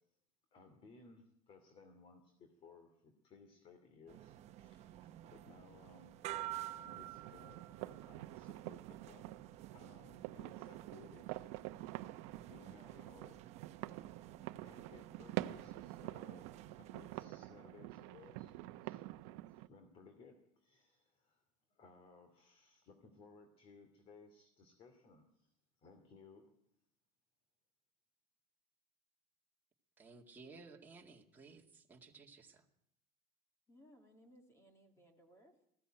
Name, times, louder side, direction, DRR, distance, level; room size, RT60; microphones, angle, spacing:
voice 1, 0.5-6.1 6.8-9.3 9.7-11.4 12.4-13.4 14.6-19.0 19.5-21.4 21.7-25.5 25.8-26.5, left 4 dB, 35° left, 7 dB, 2.6 m, -61 dB
sound 1, 4.1-17.3, right 14 dB, 40° right, 1.0 m, -51 dB
sound 2, 6.9-19.7, right 16 dB, 70° right, 0.9 m, -47 dB
voice 2, 30.0-32.7, right 4 dB, 10° right, -1 dB, 2.2 m, -57 dB
voice 3, 33.7-35.7, equal, 15° left, 5 dB, 2.2 m, -64 dB
20.0 x 15.5 x 9.0 m, 0.76 s
cardioid pair, 160°, 17 cm